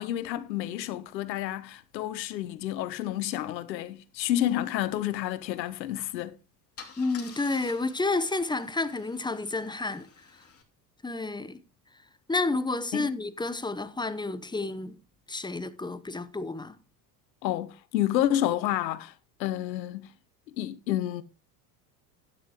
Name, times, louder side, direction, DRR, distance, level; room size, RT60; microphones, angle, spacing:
voice 1, 0.0-6.4 12.9-13.1 17.4-19.1 19.4-20.1 20.6-21.2, left 12 dB, 85° left, 1.1 m, -29 dB
Car / Engine starting / Idling, 6.2-6.3 6.8-10.6, left 6 dB, 30° left, 2.8 m, -50 dB
voice 2, 7.0-10.1 11.0-11.6 12.3-15.0 15.3-16.8, left 3 dB, 10° left, 0.9 m, -30 dB
12.0 x 9.6 x 3.0 m
hypercardioid pair, 90°, 50 cm